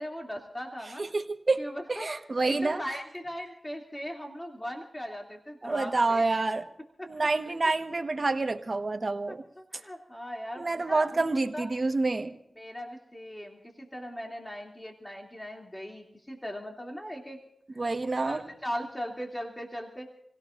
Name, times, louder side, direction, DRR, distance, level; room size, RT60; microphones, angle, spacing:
voice 1, 0.0-1.0 1.6-2.1 2.4-6.2 7.0-7.1 7.4-7.7 9.3-11.7 12.6-17.4 17.7-20.1, equal, 15° left, 1 dB, 2.7 m, -39 dB
voice 2, 1.0-1.6 1.9-3.0 5.6-6.6 7.1-9.4 10.6-12.4 17.8-18.4, right 3 dB, 45° right, 7 dB, 1.3 m, -28 dB
28.5 x 17.0 x 2.6 m, 0.81 s
cardioid pair, 55°, 0 cm